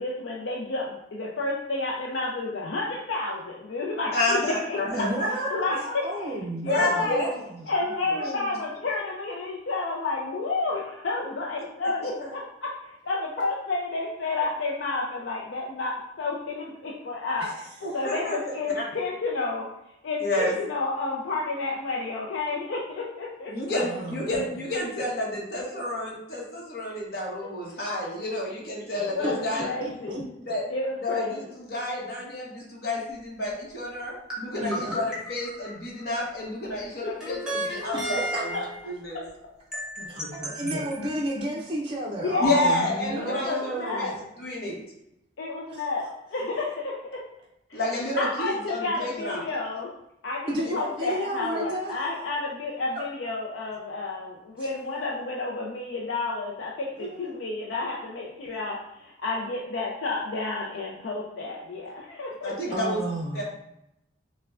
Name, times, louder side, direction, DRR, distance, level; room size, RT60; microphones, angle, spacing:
voice 1, 0.0-4.4 4.7-4.8 5.5-6.4 6.6-7.2 7.7-17.5 17.9-19.7 20.0-23.5 29.0-30.2 30.7-31.4 42.2-42.9 43.2-44.1 45.4-47.2 47.7-47.8 48.2-49.9 50.2-62.7, left 3 dB, 80° left, -3 dB, 0.5 m, -31 dB
voice 2, 4.1-5.5 5.8-6.0 6.6-7.3 7.7-8.4 11.8-12.3 17.8-18.4 18.7-18.8 20.2-20.5 23.5-29.7 30.5-30.6 31.0-39.2 40.0-40.8 42.4-44.1 44.4-44.8 47.7-49.5 50.6-50.7 62.4-63.1 63.3-63.4, left 1 dB, 55° left, -4 dB, 1.1 m, -30 dB
voice 3, 4.9-5.7 6.0-7.7 17.4-17.5 23.7-24.3 29.0-30.2 34.6-35.0 37.8-38.4 40.1-44.2 45.7-45.8 50.5-52.0 52.9-53.0 54.6-54.7 57.0-57.4 62.7-63.4, right 1 dB, 25° right, -3 dB, 0.4 m, -32 dB
sound 1, 34.3-36.2 37.2-38.9 39.7-41.4, right 1 dB, 5° right, 0.9 m, -34 dB
5.5 x 2.2 x 2.4 m, 0.83 s
head